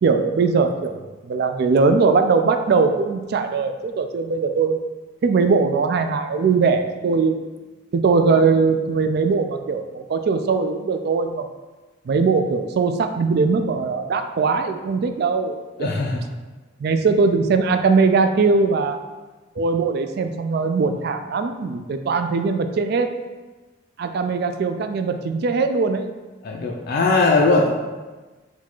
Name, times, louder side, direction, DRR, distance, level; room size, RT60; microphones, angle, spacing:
voice 1, 0.0-4.8 5.2-7.4 7.9-11.5 12.1-15.9 16.8-19.0 19.6-23.1 24.0-26.1, right 4 dB, 55° right, 8 dB, 0.3 m, -20 dB
voice 2, 15.8-16.2 26.4-27.7, left 3 dB, 55° left, -1 dB, 0.4 m, -19 dB
4.1 x 2.3 x 4.4 m, 1.2 s
head